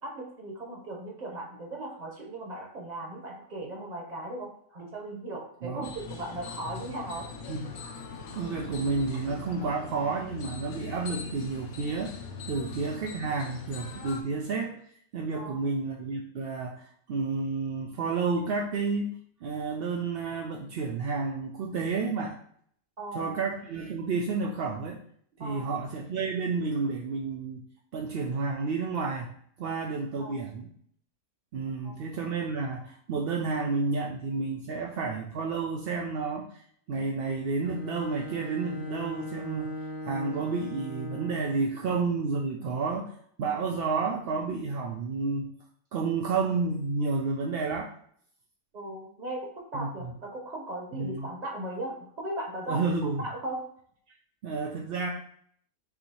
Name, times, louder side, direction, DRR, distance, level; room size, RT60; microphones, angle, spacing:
voice 1, 0.0-7.3 12.5-12.7 15.3-15.7 23.0-23.4 25.4-25.7 30.2-30.5 31.8-32.0 48.7-53.6, right 1 dB, 35° right, -1 dB, 1.1 m, -38 dB
sound 1, 5.8-14.2, left 4 dB, 65° left, 0.9 m, -41 dB
voice 2, 8.3-12.1 12.5-14.7 15.1-22.4 23.1-25.0 25.4-27.6 27.9-29.3 29.6-30.7 31.5-39.7 40.0-45.5 45.9-47.9 49.7-50.1 51.0-51.3 52.7-53.2 54.4-55.1, right 4 dB, 65° right, 0 dB, 0.6 m, -31 dB
Bowed string instrument, 37.6-41.8, left 1 dB, 40° left, 0.4 m, -39 dB
6.0 x 2.7 x 2.9 m, 0.62 s
omnidirectional pair, 1.4 m